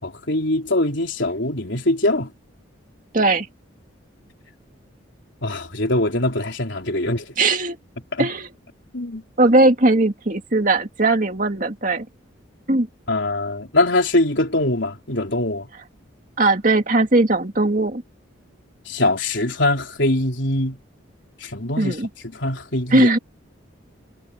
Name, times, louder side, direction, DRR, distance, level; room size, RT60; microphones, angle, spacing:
voice 1, 0.0-2.3 5.4-7.2 8.1-8.3 8.9-9.2 13.1-15.7 18.9-20.8 21.4-22.0 22.4-23.1, left 1 dB, 65° left, 3.9 m, -22 dB
voice 2, 3.1-3.5 7.4-7.8 8.2-8.5 9.4-12.1 12.7-12.9 16.4-18.0 21.8-22.1 22.9-23.2, right 2 dB, 40° right, 2.4 m, -18 dB
head